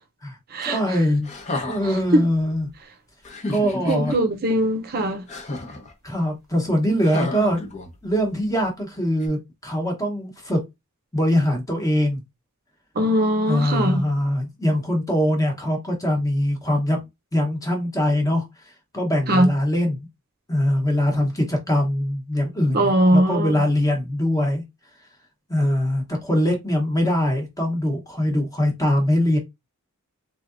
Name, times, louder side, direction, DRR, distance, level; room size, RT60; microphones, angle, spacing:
voice 1, 0.6-1.3 1.7-2.7 3.5-4.1 6.0-7.6 8.0-10.6 11.1-12.2 13.5-17.0 17.3-18.5 18.9-20.1 20.5-24.6 25.5-29.4, equal, 15° left, 1.1 m, -22 dB
sound 1, 1.2-2.1 3.2-4.2 5.3-5.9 7.0-8.2 9.2-9.3, left 2 dB, 35° left, 0.8 m, -31 dB
voice 2, 3.9-5.2 13.0-14.0 19.3-19.5 22.7-23.6, equal, 45° right, 0.7 m, -20 dB
3.8 x 3.3 x 2.5 m
head